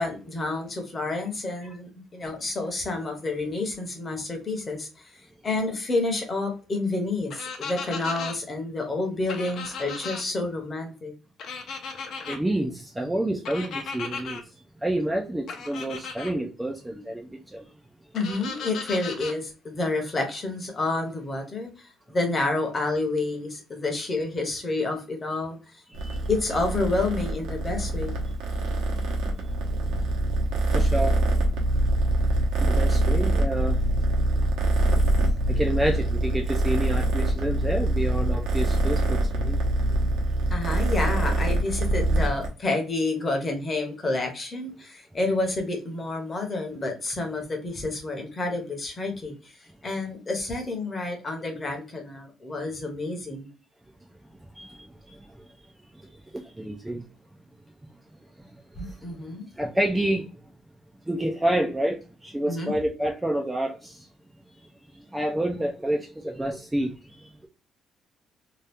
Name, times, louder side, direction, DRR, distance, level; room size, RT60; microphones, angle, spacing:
voice 1, 0.0-11.1 18.1-25.8 26.3-28.1 40.5-53.5 58.8-59.5 62.5-62.7, left 2 dB, 25° left, 0.8 m, -29 dB
sound 1, 7.3-8.3 9.3-10.2 11.4-12.4 13.4-14.4 15.5-16.3 18.1-19.3, left 5 dB, 55° left, 0.7 m, -36 dB
voice 2, 12.3-14.4 14.8-17.6 25.9-26.2 30.7-31.1 32.6-33.8 35.5-39.6 54.6-54.8 55.1-55.2 56.3-57.0 59.6-60.3 61.1-64.0 65.1-66.9, right 1 dB, 5° right, 0.3 m, -28 dB
Purr, 25.9-42.5, right 1 dB, 80° right, 0.9 m, -24 dB
2.8 x 2.3 x 3.3 m
cardioid pair, 160°, 0 cm